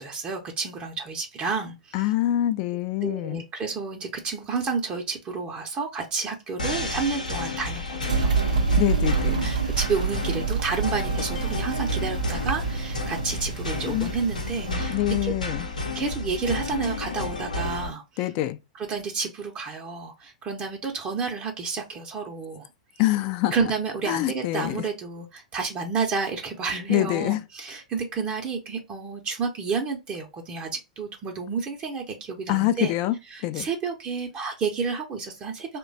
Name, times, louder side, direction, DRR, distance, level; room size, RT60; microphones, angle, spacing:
voice 1, 0.0-2.1 3.0-8.4 9.4-14.9 15.2-15.3 15.9-18.3 18.8-22.7 23.5-32.9 33.3-35.8, right 5 dB, 30° right, 0.7 m, -30 dB
voice 2, 1.9-3.4 8.8-9.6 13.9-14.1 14.7-15.7 18.2-18.6 23.0-23.5 24.1-24.8 26.9-27.4 32.5-33.2 33.4-33.7, left 15 dB, 45° left, 0.4 m, -25 dB
sound 1, 6.6-17.9, left 2 dB, 85° left, 0.8 m, -31 dB
sound 2, 8.1-14.8, right 5 dB, 75° right, 0.4 m, -27 dB
3.0 x 2.2 x 3.9 m
figure-of-eight pair, 100°, 4 cm